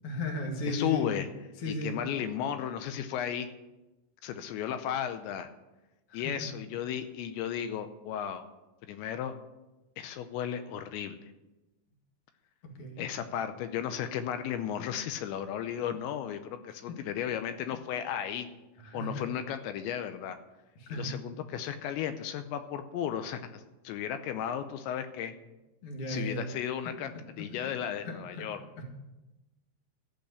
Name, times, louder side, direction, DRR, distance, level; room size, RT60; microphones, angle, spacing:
voice 1, 0.0-1.1 1.6-2.0 6.1-6.5 12.6-13.1 16.9-17.0 17.7-17.8 18.8-19.3 20.8-21.1 25.8-26.5 27.5-27.7 28.0-28.4 28.8-28.9, left 1 dB, 45° left, 2 dB, 1.9 m, -36 dB
voice 2, 0.7-1.3 1.7-3.5 4.2-5.5 6.1-8.4 8.9-9.4 10.0-11.3 13.0-18.5 18.9-20.4 20.9-25.3 26.1-27.1 27.4-28.6, left 9 dB, 85° left, 9 dB, 3.0 m, -34 dB
14.0 x 6.5 x 8.2 m, 1.0 s
omnidirectional pair, 5.3 m